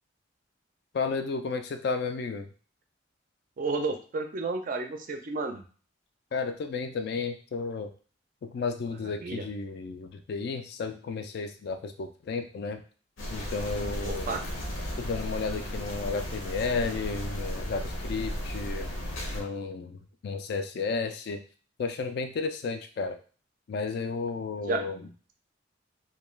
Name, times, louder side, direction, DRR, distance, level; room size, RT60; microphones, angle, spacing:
voice 1, 0.9-2.5 6.3-7.9 8.4-12.8 13.3-14.4 15.0-18.9 19.3-21.4 21.8-23.2 23.7-25.1, left 4 dB, 55° left, 7 dB, 0.3 m, -33 dB
voice 2, 3.6-5.6 9.2-9.4 14.0-14.4 24.7-24.8, right 3 dB, 45° right, 5 dB, 0.4 m, -31 dB
sound 1, 13.2-19.4, equal, 75° left, 0.7 m, -35 dB
2.3 x 2.2 x 3.1 m, 0.39 s
head